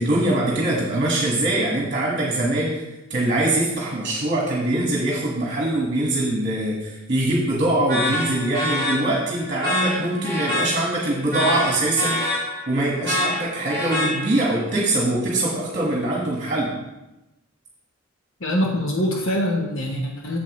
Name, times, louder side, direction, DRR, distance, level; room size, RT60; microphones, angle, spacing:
voice 1, 0.0-2.8 3.1-12.3 12.7-16.7, right 1 dB, 40° right, -3 dB, 1.5 m, -23 dB
sound 1, 7.9-14.6, left 1 dB, 20° left, 3.1 m, -27 dB
voice 2, 18.4-20.4, equal, 65° left, 0 dB, 1.0 m, -24 dB
8.8 x 6.9 x 3.1 m, 0.97 s
head